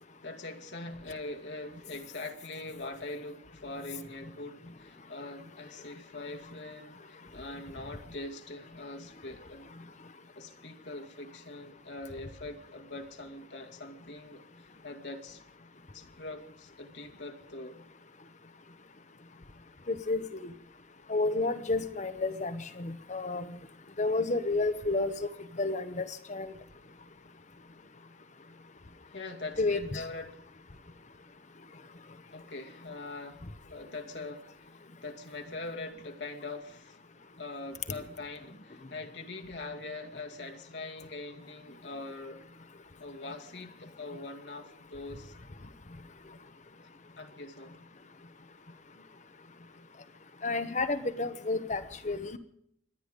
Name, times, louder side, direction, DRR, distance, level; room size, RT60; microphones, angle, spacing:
voice 1, 0.2-9.7 10.4-15.4 15.9-17.8 29.1-30.4 32.3-33.4 33.7-37.0 37.4-42.4 43.0-45.4 46.8-47.8, left 2 dB, 70° left, 3 dB, 2.3 m, -43 dB
voice 2, 19.9-20.5 21.1-23.4 24.0-25.3 25.6-26.5 29.6-30.0 50.4-52.3, left 3 dB, 40° left, 11 dB, 1.0 m, -31 dB
25.5 x 10.0 x 5.3 m, 0.69 s
head